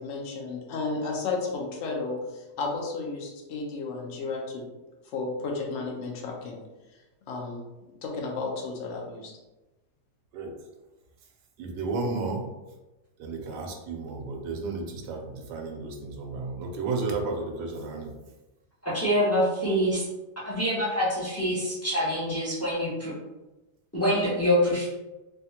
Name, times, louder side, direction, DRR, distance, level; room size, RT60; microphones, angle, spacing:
voice 1, 0.0-4.7 5.1-6.6 7.3-7.6 8.0-9.3, left 3 dB, 60° left, -1 dB, 0.8 m, -33 dB
voice 2, 11.6-12.5 13.2-18.1, right 3 dB, 90° right, 3 dB, 1.2 m, -32 dB
voice 3, 18.8-20.1 20.5-23.1 23.9-24.9, equal, 15° left, -8 dB, 0.5 m, -25 dB
3.4 x 2.3 x 2.7 m, 1.1 s
omnidirectional pair, 1.8 m